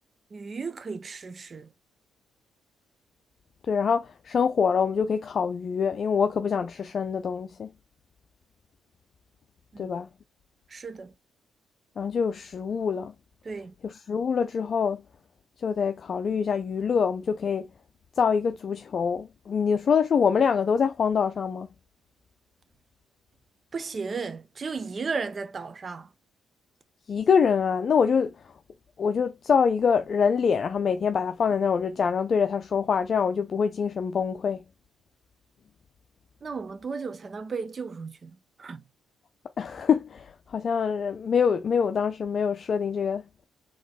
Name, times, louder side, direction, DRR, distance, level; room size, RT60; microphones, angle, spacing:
voice 1, 0.3-1.7 9.7-10.0 10.7-11.1 13.4-13.7 23.7-26.1 36.4-38.8, right 4 dB, 40° right, 0.7 m, -35 dB
voice 2, 3.7-7.7 9.8-10.1 12.0-13.1 14.1-15.0 15.6-17.6 18.2-21.7 27.1-28.3 29.0-34.6 39.6-43.2, left 6 dB, 50° left, 0.5 m, -25 dB
4.1 x 3.0 x 4.2 m
cardioid pair, 90°, 0 cm